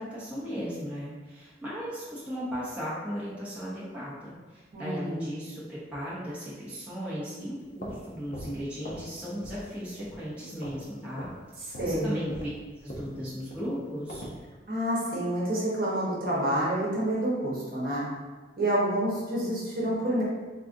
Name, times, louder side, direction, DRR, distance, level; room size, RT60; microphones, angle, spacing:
voice 1, 0.0-11.3 11.7-12.5 12.8-14.3, equal, 5° right, -10 dB, 0.6 m, -36 dB
voice 2, 4.7-5.3 11.8-12.2 14.7-18.1 18.6-20.2, right 1 dB, 55° right, -6 dB, 0.9 m, -28 dB
sound 1, 7.6-9.1 9.4-9.7 10.0-10.9 11.2-11.4 11.7-14.4, equal, 50° left, 0.5 m, -42 dB
3.6 x 2.4 x 2.5 m, 1.3 s
head